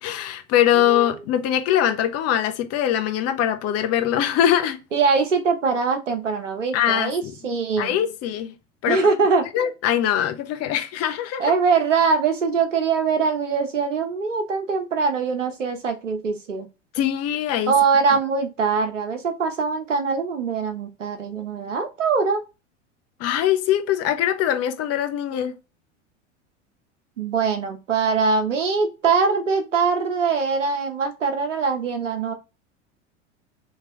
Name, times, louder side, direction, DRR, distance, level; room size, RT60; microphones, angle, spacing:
voice 1, 0.0-4.8 6.7-7.3 7.8-8.6 8.8-9.1 9.5-11.5 16.9-17.7 23.2-25.5, left 10 dB, 40° left, 0.9 m, -22 dB
voice 2, 0.7-1.2 4.9-8.0 8.9-9.5 11.4-16.7 17.7-22.4 27.2-32.3, right 5 dB, 85° right, 1.0 m, -22 dB
3.2 x 3.2 x 3.7 m
hypercardioid pair, 85°, 36 cm